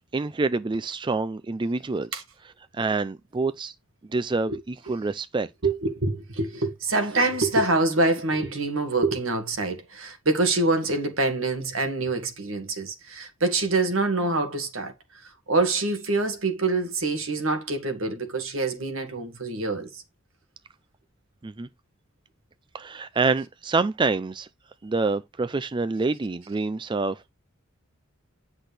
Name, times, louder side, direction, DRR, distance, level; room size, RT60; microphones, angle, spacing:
voice 1, 0.1-2.2 2.7-3.7 4.1-5.5 21.4-21.7 22.7-24.5 24.8-27.3, right 3 dB, 25° right, 0.4 m, -27 dB
voice 2, 5.6-20.0, right 2 dB, 75° right, 2.1 m, -25 dB
10.0 x 6.0 x 3.4 m
head